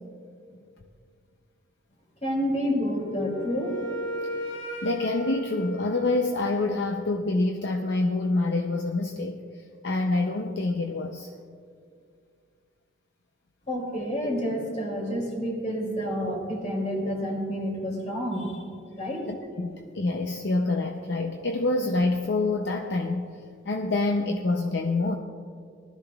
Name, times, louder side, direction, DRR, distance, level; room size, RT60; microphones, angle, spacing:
voice 1, 2.2-3.8 13.7-18.6 18.9-19.3, equal, 35° left, -1 dB, 2.8 m, -29 dB
Wind instrument woodwind instrument, 3.0-6.8, equal, 85° left, 2.4 m, -35 dB
voice 2, 4.8-9.4 9.8-11.3 19.3-23.3 23.7-25.2, left 2 dB, 60° left, 3 dB, 0.6 m, -26 dB
19.5 x 12.5 x 2.4 m, 2.3 s
head